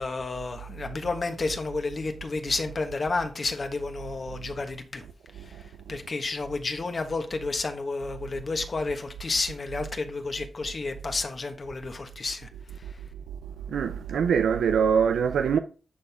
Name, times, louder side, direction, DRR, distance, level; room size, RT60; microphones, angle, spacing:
voice 1, 0.0-5.0 5.9-12.5, left 3 dB, 50° left, 1.3 m, -31 dB
voice 2, 13.7-15.6, right 7 dB, 90° right, 0.3 m, -23 dB
11.0 x 4.1 x 3.5 m
cardioid pair, 45°, 0 cm